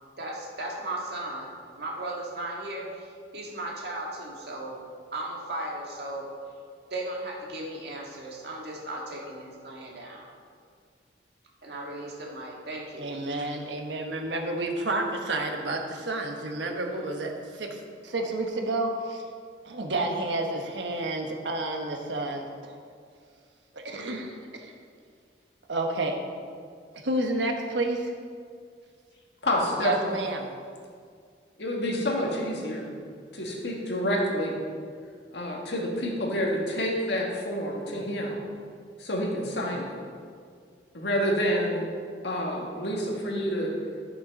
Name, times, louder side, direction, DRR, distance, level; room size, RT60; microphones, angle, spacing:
voice 1, 0.2-1.5 1.7-4.8 5.1-6.3 6.9-10.3 11.6-13.1, right 1 dB, 60° right, -2 dB, 1.9 m, -36 dB
voice 2, 13.0-19.2 19.6-22.7 23.7-24.7 25.7-26.2 27.0-28.1 29.8-30.5, right 2 dB, 80° right, 3 dB, 1.2 m, -30 dB
voice 3, 29.4-30.1 31.6-32.9 33.3-34.5 35.3-38.4 39.0-39.9 40.9-41.9 42.2-43.7, equal, 70° left, -2 dB, 2.0 m, -28 dB
11.0 x 6.8 x 5.3 m, 2.1 s
head